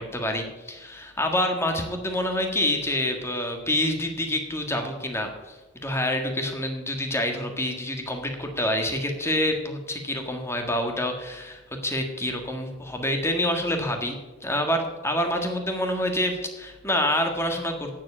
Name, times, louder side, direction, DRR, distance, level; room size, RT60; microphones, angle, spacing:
voice 1, 0.0-5.5 5.8-14.2 14.4-17.9, left 1 dB, 15° left, 4 dB, 1.5 m, -27 dB
9.2 x 7.4 x 8.5 m, 1.1 s
head